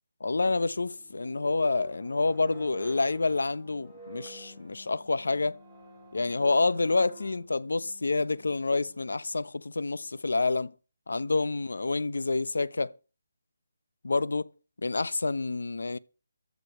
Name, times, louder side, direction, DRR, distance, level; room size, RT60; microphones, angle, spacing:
voice 1, 0.2-5.6 6.1-10.7 11.1-12.9 14.0-14.5 14.8-16.0, left 3 dB, 85° left, 0.9 m, -28 dB
sound 1, 0.7-9.5, equal, 5° left, 2.9 m, -50 dB
14.5 x 5.2 x 9.0 m
hypercardioid pair, 170°, 0 cm